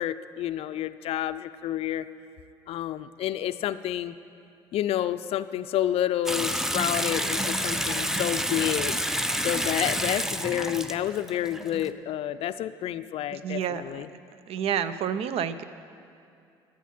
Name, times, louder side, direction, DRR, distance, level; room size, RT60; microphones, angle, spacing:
voice 1, 0.0-2.1 2.7-4.1 4.7-8.9 9.4-14.1, left 12 dB, 60° left, 13 dB, 0.4 m, -29 dB
Water tap faucet / Sink (filling or washing) / Bathtub (filling or washing), 6.3-11.9, equal, 5° right, 0.6 m, -29 dB
voice 2, 13.3-14.0 14.5-15.6, right 8 dB, 60° right, 14 dB, 0.5 m, -29 dB
12.0 x 7.3 x 6.0 m, 2.5 s
hypercardioid pair, 60°, 12 cm